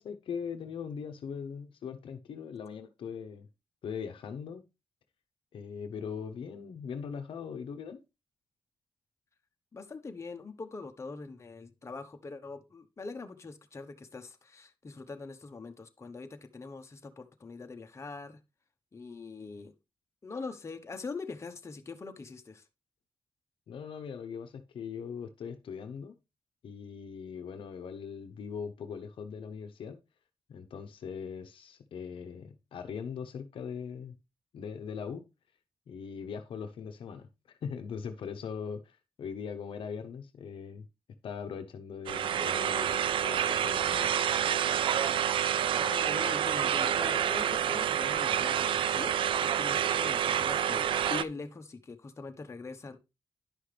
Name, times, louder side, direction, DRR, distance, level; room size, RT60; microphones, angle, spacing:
voice 1, 0.0-3.5 3.8-4.6 5.5-8.0 23.7-26.1 26.6-30.0 30.5-34.2 34.5-35.2 35.9-40.8 41.2-44.1, left 6 dB, 80° left, 0.9 m, -40 dB
voice 2, 9.7-18.4 18.9-19.7 20.2-22.6 45.7-53.0, left 4 dB, 30° left, 1.1 m, -43 dB
sound 1, 42.1-51.2, right 9 dB, 75° right, 0.3 m, -28 dB
10.5 x 5.7 x 3.4 m
cardioid pair, 95°, 9 cm